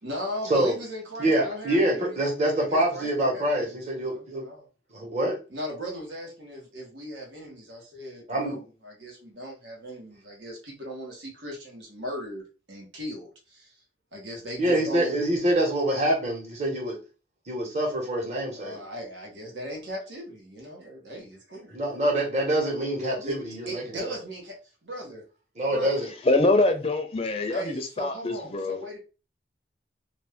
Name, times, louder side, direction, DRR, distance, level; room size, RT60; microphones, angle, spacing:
voice 1, 0.0-4.7 5.5-13.8 14.1-15.2 18.5-21.7 23.0-23.4 23.7-25.2 25.7-26.0 27.5-29.0, equal, 85° right, 1.3 m, -38 dB
voice 2, 1.2-4.5 4.9-5.4 8.3-8.6 14.6-17.0 17.5-18.8 21.7-24.0 25.6-26.1, right 1 dB, 40° right, 1.2 m, -25 dB
voice 3, 26.3-28.8, left 2 dB, 30° left, 0.4 m, -24 dB
2.6 x 2.5 x 3.4 m
head